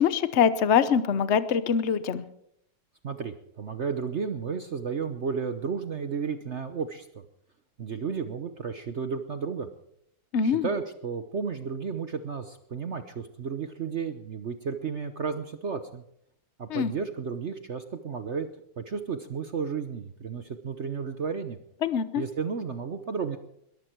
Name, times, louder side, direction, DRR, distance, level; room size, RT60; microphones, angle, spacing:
voice 1, 0.0-2.2 10.3-10.7 16.7-16.9 21.8-22.2, left 7 dB, 60° left, 13 dB, 0.7 m, -23 dB
voice 2, 3.0-7.2 7.8-9.7 10.4-16.0 16.6-18.5 18.8-21.6 22.2-23.4, right 5 dB, 55° right, 9 dB, 0.7 m, -33 dB
21.5 x 14.5 x 4.6 m, 0.73 s
omnidirectional pair, 2.4 m